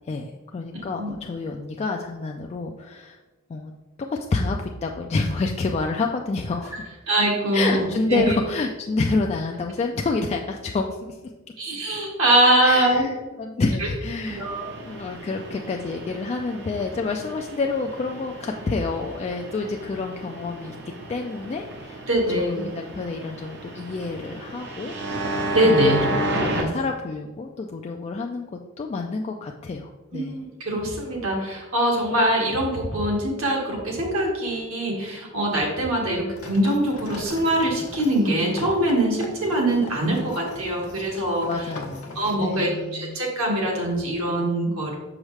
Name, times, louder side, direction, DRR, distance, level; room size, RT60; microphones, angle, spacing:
voice 1, 0.1-3.2 3.5-3.7 4.0-6.9 7.5-11.2 12.6-14.4 14.8-20.7 21.1-22.0 22.4-24.9 25.6-28.5 28.8-30.4 41.4-43.2, left 3 dB, 30° left, 2 dB, 0.3 m, -28 dB
voice 2, 7.1-8.3 11.6-13.1 13.8-13.9 14.3-14.6 22.1-22.6 25.5-26.0 26.6-26.7 30.1-41.5 42.1-44.9, right 1 dB, 70° right, -1 dB, 1.5 m, -23 dB
sound 1, 14.3-26.6, right 1 dB, 55° right, 0.8 m, -33 dB
sound 2, 36.3-42.3, left 1 dB, 85° left, 1.0 m, -40 dB
6.3 x 4.9 x 3.2 m, 1.2 s
head